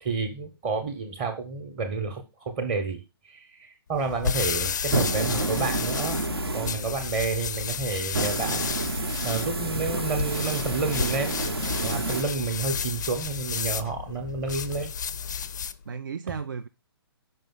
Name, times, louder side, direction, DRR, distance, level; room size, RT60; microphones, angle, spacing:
voice 1, 0.0-6.2 6.5-8.7 9.2-11.4 11.8-14.9, right 4 dB, 25° right, 1.0 m, -30 dB
sound 1, 3.9-15.8, left 7 dB, 45° left, 0.4 m, -32 dB
sound 2, 4.8-7.2 8.1-12.2, right 3 dB, 70° right, 0.9 m, -29 dB
voice 2, 9.7-10.2 12.7-13.0 15.9-16.7, right 5 dB, 55° right, 0.4 m, -36 dB
5.4 x 5.3 x 3.7 m
figure-of-eight pair, 130°, 13 cm